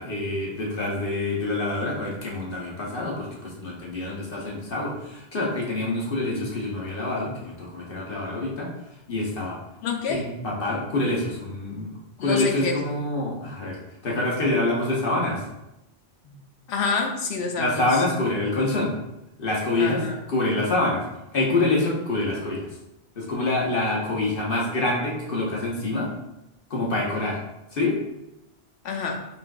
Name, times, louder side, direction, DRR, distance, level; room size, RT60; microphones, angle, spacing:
voice 1, 0.0-8.7 9.1-9.6 10.1-13.8 14.0-15.4 16.2-16.3 17.6-18.9 19.4-20.0 20.3-21.0 21.3-22.7 23.2-26.1 26.7-27.4 27.7-28.0, left 2 dB, 60° left, -3 dB, 1.0 m, -26 dB
voice 2, 9.8-10.2 12.2-12.9 16.7-17.9 19.8-20.2 28.8-29.2, left 4 dB, 90° left, 3 dB, 0.9 m, -27 dB
5.6 x 2.6 x 2.3 m, 0.89 s
omnidirectional pair, 1.1 m